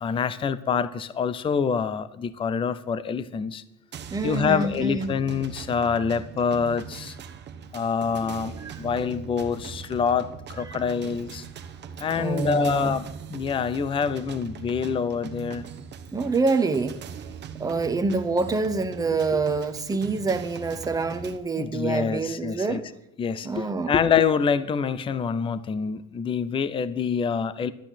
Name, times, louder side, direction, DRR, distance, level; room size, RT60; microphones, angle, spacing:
voice 1, 0.0-3.6 4.2-7.1 7.7-11.4 12.0-15.6 21.6-22.8 23.2-27.7, left 6 dB, 15° left, 16 dB, 0.5 m, -26 dB
sound 1, 3.9-21.4, right 7 dB, 25° right, 1.1 m, -41 dB
voice 2, 4.1-5.2 8.6-8.8 10.7-10.8 12.2-13.0 16.1-16.9 17.6-22.8 23.4-23.9, right 3 dB, 10° right, 6 dB, 0.9 m, -26 dB
12.5 x 8.9 x 9.9 m, 0.80 s
cardioid pair, 160°, 38 cm